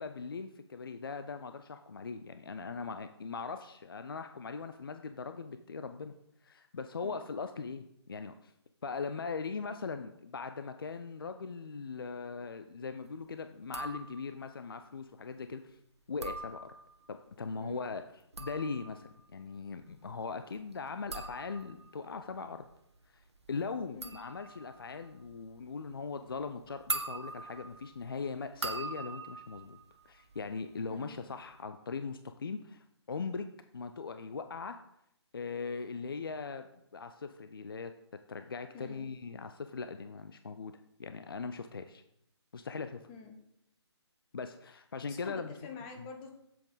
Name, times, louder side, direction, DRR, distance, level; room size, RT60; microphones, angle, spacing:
voice 1, 0.0-6.1 6.4-8.5 8.8-15.8 16.1-16.7 17.1-18.0 18.4-22.7 23.1-23.2 23.5-29.8 30.1-33.5 33.7-34.8 35.3-37.9 38.3-42.0 42.5-43.0 44.3-45.5 46.0-46.1, left 4 dB, 50° left, 9 dB, 0.5 m, -40 dB
sound 1, 13.6-14.5 16.0-17.1 18.1-30.8 31.1-31.6, right 3 dB, 70° right, 1.1 m, -43 dB
voice 2, 45.0-46.3, left 4 dB, 15° left, 3 dB, 1.1 m, -47 dB
8.1 x 7.7 x 4.0 m, 0.77 s
figure-of-eight pair, 145°, 15 cm